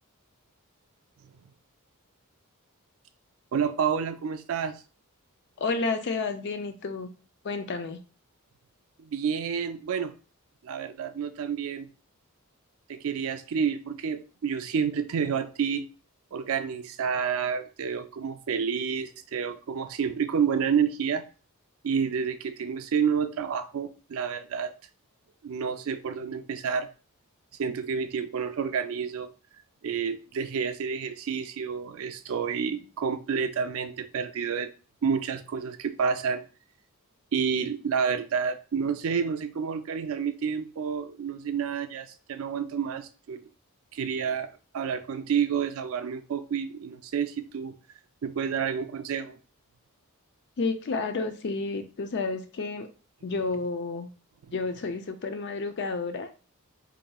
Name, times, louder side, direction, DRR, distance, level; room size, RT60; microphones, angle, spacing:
voice 1, 3.5-4.7 9.0-10.1 10.6-11.9 12.9-15.9 16.3-21.2 21.8-24.7 25.4-26.9 27.6-29.3 29.8-34.7 35.0-36.4 37.3-43.4 43.9-47.7 48.2-49.4, right 6 dB, 65° right, 0.4 m, -29 dB
voice 2, 5.6-7.1 7.4-8.0 50.6-52.9 53.2-54.1 54.5-56.3, left 3 dB, 50° left, 0.4 m, -30 dB
4.1 x 2.6 x 2.3 m
head